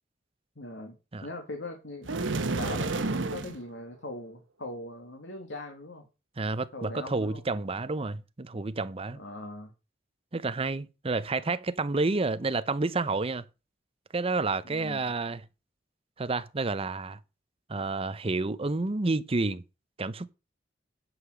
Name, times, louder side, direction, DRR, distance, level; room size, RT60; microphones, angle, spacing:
voice 1, 0.6-1.0 1.2-2.2 2.5-6.1 6.7-7.4 9.1-9.7 14.6-15.1, left 1 dB, 70° left, 2.0 m, -41 dB
sound 1, 2.0-3.6, right 3 dB, 90° right, 1.1 m, -30 dB
voice 2, 6.4-9.2 10.3-13.4 14.1-15.4 16.2-17.2 17.7-19.6 20.0-20.3, right 3 dB, 30° right, 0.7 m, -30 dB
9.9 x 5.7 x 6.2 m
head